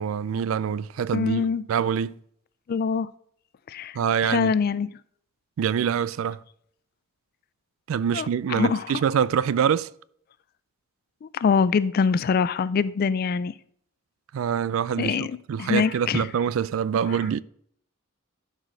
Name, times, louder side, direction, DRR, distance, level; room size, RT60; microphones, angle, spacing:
voice 1, 0.0-2.1 4.0-4.5 5.6-6.4 7.9-9.9 14.3-17.4, right 8 dB, 80° right, 0.3 m, -25 dB
voice 2, 1.1-1.6 2.7-3.1 3.7-4.9 8.1-8.9 11.2-13.5 15.0-16.3 17.1-17.2, left 5 dB, 50° left, 0.3 m, -24 dB
11.5 x 4.9 x 3.9 m
head